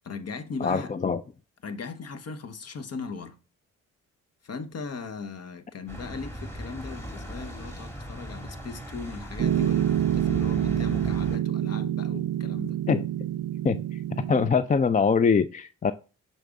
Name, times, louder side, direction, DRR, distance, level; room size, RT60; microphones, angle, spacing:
voice 1, 0.0-0.9 1.6-3.4 4.4-12.8, left 4 dB, 50° left, 1.0 m, -38 dB
voice 2, 0.6-1.2 12.9-13.0 13.6-14.0 14.3-15.9, left 5 dB, 25° left, 0.4 m, -23 dB
sound 1, 5.9-11.4, equal, 5° left, 1.9 m, -38 dB
Piano, 9.4-14.5, right 12 dB, 50° right, 0.5 m, -27 dB
6.4 x 4.1 x 3.6 m
supercardioid pair, 55°, 33 cm